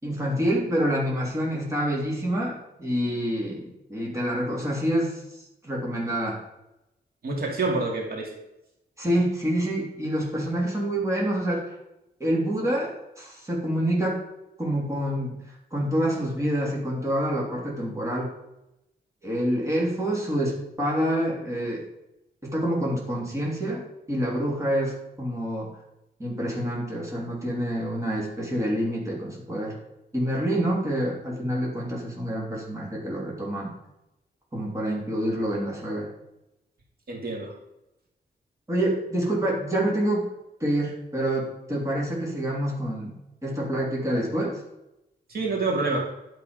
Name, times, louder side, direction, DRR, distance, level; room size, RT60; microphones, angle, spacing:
voice 1, 0.0-6.4 9.0-11.8 12.2-14.2 14.6-15.4 15.7-18.3 19.2-21.8 22.4-25.7 26.2-29.7 30.1-33.7 34.5-36.1 38.7-40.3 40.6-43.1 43.4-44.6, right 1 dB, 15° right, -3 dB, 3.3 m, -27 dB
voice 2, 7.2-8.3 37.1-37.5 45.3-46.1, right 3 dB, 60° right, -1 dB, 2.7 m, -27 dB
11.0 x 7.7 x 5.3 m, 0.90 s
wide cardioid pair, 145°, 17 cm